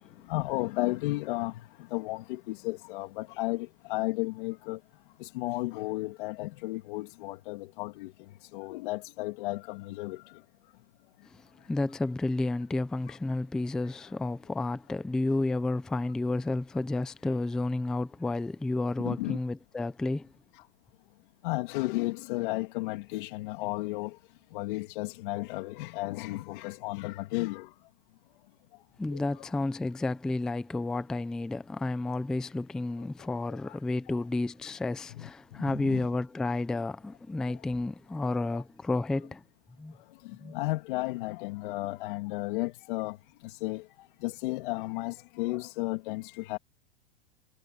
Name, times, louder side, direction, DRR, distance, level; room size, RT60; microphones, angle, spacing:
voice 1, 0.0-4.8 5.2-8.1 8.4-10.4 13.8-13.9 17.2-17.3 19.0-19.4 20.5-20.7 21.4-24.2 24.5-27.7 29.1-29.5 33.5-33.8 34.1-34.2 35.1-36.1 37.5-37.6 38.5-38.6 40.2-43.2 43.4-46.6, left 20 dB, 50° left, 2.6 m, -34 dB
voice 2, 11.7-20.3 29.0-39.4 39.8-39.9 40.4-40.5, left 2 dB, ahead, 0.4 m, -31 dB
supercardioid pair, 150°, 33 cm